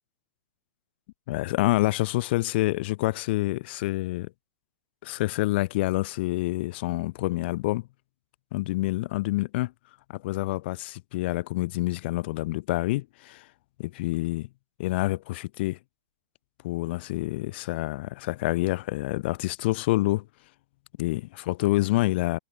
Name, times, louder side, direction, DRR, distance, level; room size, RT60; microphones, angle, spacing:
voice 1, 1.3-4.3 5.0-7.9 8.5-9.7 10.1-13.5 13.8-14.5 14.8-15.8 16.6-20.3 21.0-22.4, left 19 dB, 50° left, 2.0 m, -27 dB
hypercardioid pair, 150°, 7 cm